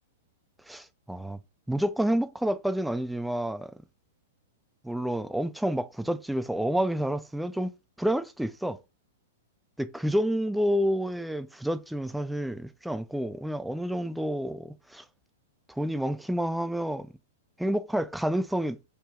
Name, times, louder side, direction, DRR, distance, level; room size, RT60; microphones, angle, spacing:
voice 1, 0.7-1.4 1.7-3.7 4.8-8.8 9.8-15.0 15.7-17.1 17.6-18.8, equal, ahead, 0.3 m, -29 dB
3.5 x 2.1 x 3.5 m
figure-of-eight pair, 105°, 0 cm